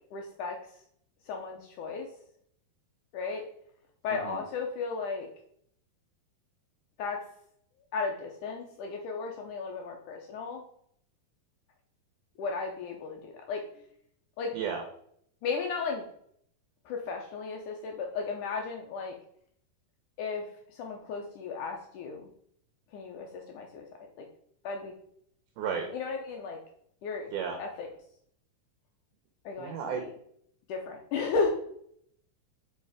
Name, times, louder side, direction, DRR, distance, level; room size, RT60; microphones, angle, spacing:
voice 1, 0.1-0.6 1.3-2.1 3.1-3.4 4.0-5.3 7.0-7.2 7.9-10.6 12.4-13.6 14.4-14.5 15.4-16.0 16.9-19.1 20.2-20.4 20.8-22.2 22.9-23.3 23.5-23.9 24.2-24.3 24.6-24.9 25.9-26.6 27.0-27.3 27.6-27.9 29.5-30.1 30.7-31.5, left 4 dB, 75° left, 2 dB, 2.0 m, -34 dB
voice 2, 4.1-4.4 14.5-14.8 25.6-25.9 27.3-27.6 29.6-30.0, right 6 dB, 70° right, 3 dB, 2.3 m, -33 dB
5.7 x 5.0 x 4.9 m, 0.67 s
omnidirectional pair, 4.3 m